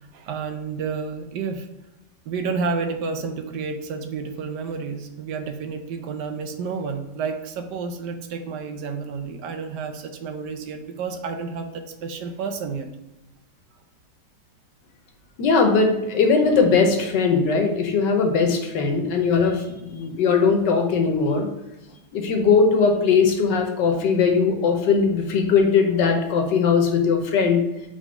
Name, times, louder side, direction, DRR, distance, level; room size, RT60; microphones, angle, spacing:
voice 1, 0.1-1.7 2.2-12.9, right 5 dB, 70° right, 6 dB, 1.2 m, -30 dB
voice 2, 15.4-21.5 22.1-27.6, left 5 dB, 70° left, 3 dB, 1.5 m, -19 dB
5.2 x 3.6 x 5.2 m, 0.95 s
omnidirectional pair, 2.0 m